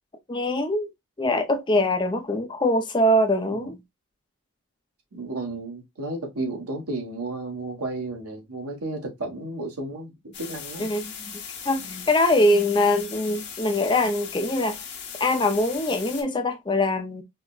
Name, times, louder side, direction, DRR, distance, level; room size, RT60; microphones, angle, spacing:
voice 1, 0.3-0.9 1.2-3.8 10.8-14.8 15.2-17.2, left 1 dB, 20° left, 0.4 m, -23 dB
voice 2, 5.1-10.9, right 2 dB, 90° right, 1.2 m, -33 dB
sound 1, 10.3-16.2, left 7 dB, 50° left, 1.1 m, -38 dB
4.8 x 2.1 x 2.3 m
head